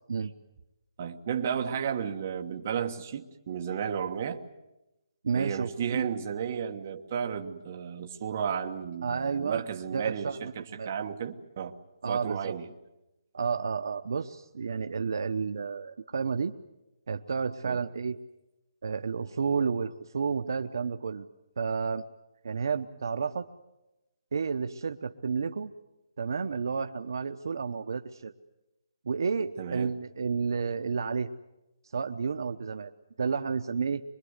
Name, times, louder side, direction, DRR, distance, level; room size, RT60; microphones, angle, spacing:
voice 1, 1.0-4.4 5.3-11.8 12.1-12.7 17.6-17.8 29.6-29.9, right 7 dB, 25° right, 4 dB, 1.3 m, -33 dB
voice 2, 5.2-6.1 9.0-9.6 9.9-10.9 12.0-12.5 13.3-16.5 17.1-18.2 18.8-21.3 21.6-22.0 22.4-23.5 24.3-25.7 26.2-28.3 29.0-31.3 31.9-32.9 33.2-34.0, right 5 dB, 50° right, 8 dB, 0.9 m, -31 dB
24.5 x 22.5 x 8.1 m, 0.96 s
hypercardioid pair, 180°, 3 cm